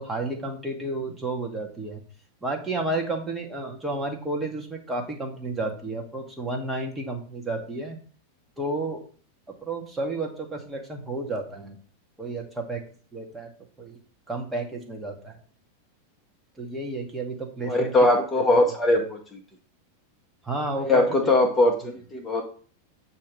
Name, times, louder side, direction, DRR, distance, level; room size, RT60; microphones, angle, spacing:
voice 1, 0.0-2.0 2.4-8.0 8.6-9.0 9.5-11.8 12.2-12.8 13.1-13.5 13.8-14.0 14.3-15.4 16.6-17.9 18.9-19.0 20.4-21.3 21.6-21.7, right 2 dB, 10° right, 2 dB, 1.2 m, -31 dB
voice 2, 17.7-19.4 20.8-22.4, left 2 dB, 15° left, 2 dB, 1.0 m, -21 dB
7.6 x 2.9 x 5.1 m, 0.41 s
figure-of-eight pair, 90°, 0 cm